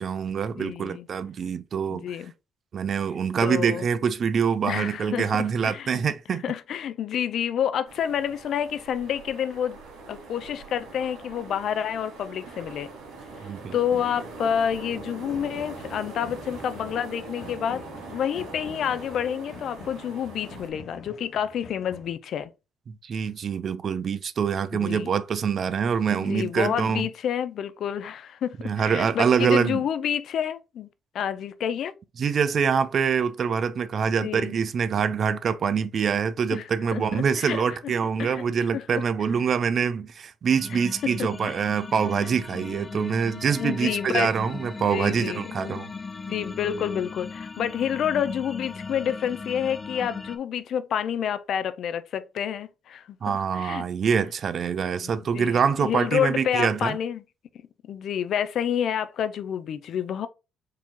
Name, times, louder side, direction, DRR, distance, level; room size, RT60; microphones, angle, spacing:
voice 1, 0.0-2.2 2.7-6.4 13.4-13.7 22.9-27.1 28.6-29.8 32.2-45.9 53.2-57.0, right 6 dB, 55° right, 0.5 m, -25 dB
voice 2, 0.6-1.1 1.9-2.3 3.4-3.9 4.7-6.0 6.4-9.8 10.1-12.9 13.7-17.8 18.1-22.5 24.7-25.1 26.1-30.9 31.1-31.9 34.2-34.6 36.5-37.6 38.2-38.4 38.7-39.0 40.7-41.3 42.2-42.3 43.6-44.3 44.8-45.8 46.3-53.2 53.5-53.9 55.0-57.2 57.8-60.3, left 9 dB, 70° left, 0.5 m, -29 dB
sound 1, 7.9-20.7, right 3 dB, 90° right, 1.9 m, -42 dB
sound 2, 15.2-22.1, left 3 dB, 55° left, 1.3 m, -46 dB
sound 3, 40.5-50.4, left 4 dB, 30° left, 0.7 m, -38 dB
4.7 x 2.9 x 3.7 m
cardioid pair, 90°, 0 cm